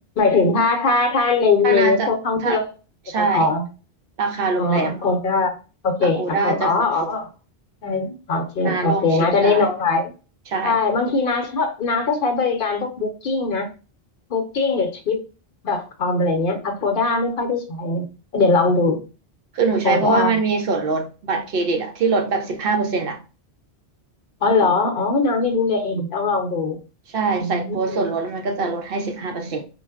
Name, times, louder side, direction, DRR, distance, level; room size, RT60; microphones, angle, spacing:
voice 1, 0.2-2.7 3.2-3.6 4.6-5.5 5.8-7.3 7.8-10.1 10.6-13.7 14.3-15.2 15.6-18.0 18.3-19.0 19.8-20.3 24.4-26.8 27.4-28.1, left 3 dB, 60° left, 0.8 m, -21 dB
voice 2, 1.6-2.1 2.4-2.6 3.1-3.5 4.2-5.0 6.0-6.7 7.0-7.1 8.6-9.7 10.5-10.8 19.5-23.2 27.1-29.7, right 4 dB, 65° right, 0.7 m, -23 dB
3.8 x 2.0 x 2.3 m
omnidirectional pair, 1.1 m